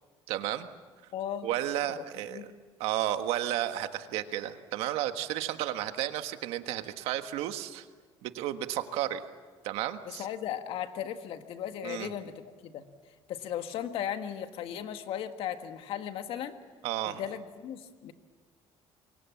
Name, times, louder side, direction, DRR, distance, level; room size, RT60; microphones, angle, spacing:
voice 1, 0.3-0.7 1.4-2.5 2.8-7.9 8.2-9.2 9.6-10.3 11.8-12.1 16.8-17.2, right 12 dB, 90° right, 8 dB, 1.5 m, -32 dB
voice 2, 1.1-1.5 2.0-2.5 10.1-12.8 13.3-16.6 17.1-18.1, left 10 dB, 70° left, 8 dB, 1.8 m, -37 dB
27.5 x 23.5 x 7.3 m, 1.5 s
cardioid pair, 130°, 10 cm